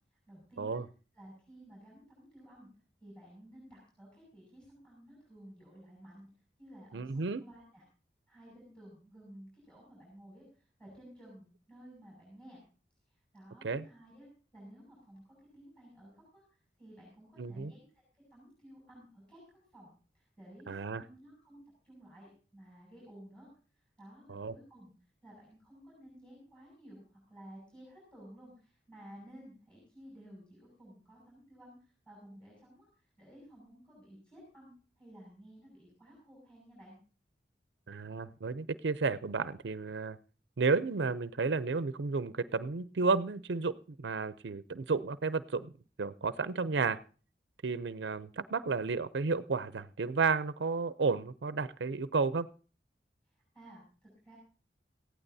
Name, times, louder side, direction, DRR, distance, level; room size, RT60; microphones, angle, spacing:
voice 1, 0.3-0.8 1.1-2.7 3.0-6.3 6.6-7.8 8.3-10.4 10.8-12.6 13.3-14.3 14.5-16.4 16.8-18.0 18.3-23.5 23.7-24.9 25.2-32.9 33.2-37.0 53.3-54.4, equal, 5° left, -3 dB, 6.4 m, -54 dB
voice 2, 6.9-7.4 13.6-13.9 17.4-17.7 20.7-21.0 24.3-24.5 37.9-40.2 40.6-45.7 46.0-47.0 47.6-52.5, right 4 dB, 85° right, 14 dB, 0.5 m, -32 dB
19.0 x 15.0 x 2.7 m, 0.38 s
head